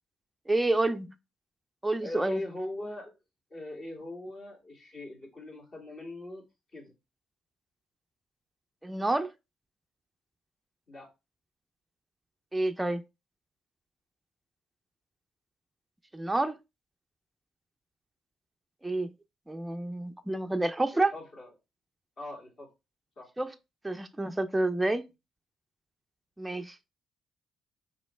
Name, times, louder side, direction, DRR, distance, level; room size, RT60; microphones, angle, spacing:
voice 1, 0.5-1.1 1.8-2.4 8.8-9.3 12.5-13.0 16.1-16.6 18.8-19.1 19.5-21.1 23.4-23.5 23.8-25.1 26.4-26.7, right 2 dB, 10° right, 0.4 m, -29 dB
voice 2, 2.0-3.1 3.5-6.4 6.7-6.9 10.9-11.1 20.9-21.5 22.2-22.7 23.2-23.3, left 1 dB, 50° left, 2.1 m, -40 dB
4.3 x 3.1 x 3.1 m
supercardioid pair, 80°, 0 cm